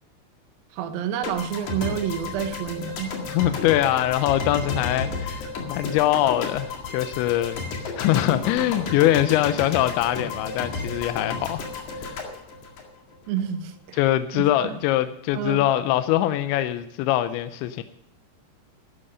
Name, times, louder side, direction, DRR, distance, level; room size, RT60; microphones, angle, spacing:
voice 1, 0.7-3.2 13.3-14.0 14.3-14.8 15.3-15.6, right 9 dB, 70° right, 8 dB, 2.4 m, -29 dB
sound 1, 1.2-13.4, left 4 dB, 50° left, 2.9 m, -33 dB
voice 2, 3.3-11.7 12.0-12.2 13.9-17.8, left 13 dB, 80° left, 11 dB, 2.8 m, -23 dB
13.5 x 10.0 x 5.3 m, 0.79 s
omnidirectional pair, 5.4 m